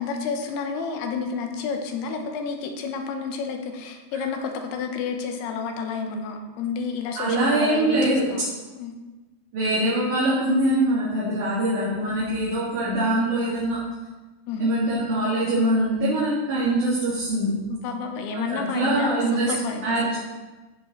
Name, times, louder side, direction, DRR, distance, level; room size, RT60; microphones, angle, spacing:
voice 1, 0.0-8.0 8.3-8.9 14.5-14.7 17.7-20.1, left 5 dB, 80° left, 4 dB, 2.9 m, -30 dB
voice 2, 7.2-8.2 9.5-13.8 14.6-17.6 18.3-19.5 19.8-20.2, right 1 dB, 50° right, -10 dB, 3.7 m, -23 dB
15.0 x 5.1 x 4.5 m, 1.2 s
omnidirectional pair, 4.7 m